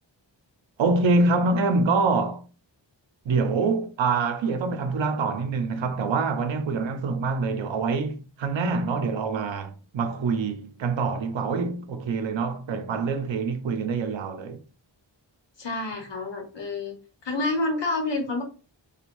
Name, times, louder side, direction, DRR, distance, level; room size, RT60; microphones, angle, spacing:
voice 1, 0.8-2.5 3.3-14.6, right 4 dB, 80° right, 0.5 m, -25 dB
voice 2, 15.6-16.9 17.2-18.4, left 2 dB, 70° left, 0.9 m, -28 dB
3.0 x 2.3 x 2.5 m
wide cardioid pair, 105°, 45 cm